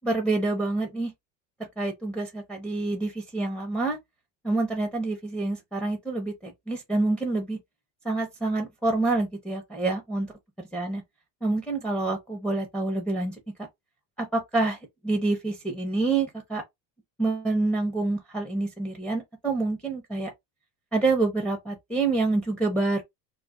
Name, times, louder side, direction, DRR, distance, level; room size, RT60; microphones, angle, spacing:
voice 1, 0.0-1.1 1.8-4.0 4.4-7.6 8.0-10.3 10.6-11.0 11.4-13.4 14.2-14.8 15.0-16.6 17.2-20.3 20.9-23.0, right 3 dB, 5° left, 0.5 m, -27 dB
2.4 x 2.2 x 3.5 m
cardioid pair, 150°, 32 cm